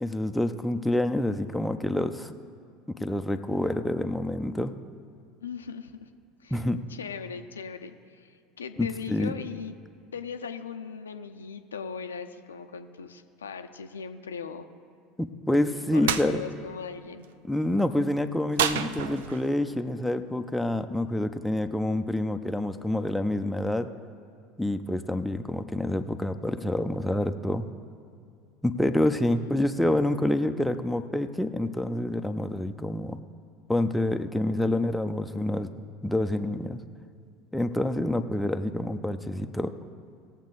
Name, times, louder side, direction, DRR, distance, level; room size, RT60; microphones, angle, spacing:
voice 1, 0.0-2.3 2.9-4.7 6.5-6.8 8.8-9.3 15.2-16.4 17.5-23.9 24.6-27.7 28.6-33.2 33.7-35.7 36.0-36.8 37.5-39.7, left 1 dB, 5° left, 7 dB, 0.6 m, -27 dB
voice 2, 5.4-6.1 6.4-6.6 6.9-9.8 10.1-14.7 15.9-17.3 29.3-29.5, left 6 dB, 80° left, 7 dB, 0.6 m, -39 dB
sound 1, 16.1-16.3 18.6-19.5, right 9 dB, 65° right, 0.5 m, -28 dB
19.0 x 7.2 x 4.0 m, 2.3 s
figure-of-eight pair, 70°, 0 cm